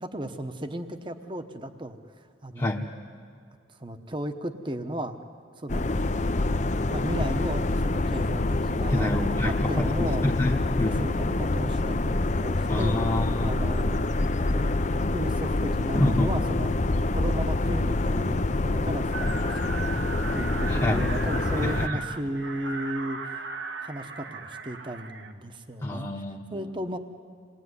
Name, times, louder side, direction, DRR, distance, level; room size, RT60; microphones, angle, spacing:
voice 1, 0.0-2.9 3.8-5.2 5.6-5.9 6.6-10.4 10.9-13.0 13.4-14.1 14.4-19.6 19.9-20.0 20.3-23.4 23.8-26.1 26.5-27.0, right 1 dB, 25° right, 8 dB, 1.1 m, -35 dB
sound 1, 5.7-21.9, left 2 dB, 40° left, 0.6 m, -26 dB
voice 2, 8.9-11.0 12.7-13.7 15.9-16.3 20.7-21.0 21.6-22.0 25.8-26.4, left 1 dB, 20° left, -1 dB, 1.1 m, -27 dB
sound 2, 19.1-25.3, right 4 dB, 70° right, 1.4 m, -37 dB
27.0 x 19.5 x 9.7 m, 2.3 s
head